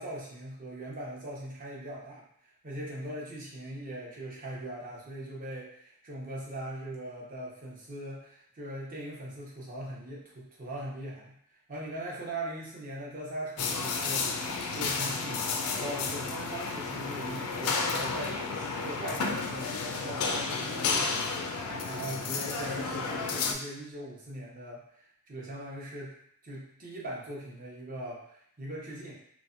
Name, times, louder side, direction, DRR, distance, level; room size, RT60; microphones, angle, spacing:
voice 1, 0.0-11.4 11.7-14.4 14.7-21.4 21.8-26.2 26.4-29.1, right 1 dB, 40° right, -4 dB, 0.7 m, -40 dB
sound 1, 13.6-23.5, left 4 dB, 85° left, 0.4 m, -32 dB
3.0 x 2.1 x 2.5 m, 0.67 s
head